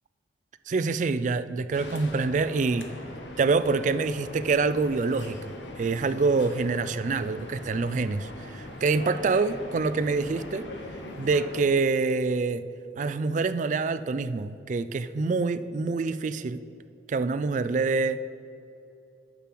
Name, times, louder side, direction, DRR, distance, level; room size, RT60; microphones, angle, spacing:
voice 1, 0.7-2.9 3.4-10.6 11.2-12.6 13.0-16.6 17.1-18.2, right 4 dB, 40° right, 13 dB, 0.3 m, -26 dB
sound 1, 1.7-11.6, left 1 dB, 75° left, 1.1 m, -41 dB
6.9 x 6.0 x 7.6 m, 2.7 s
head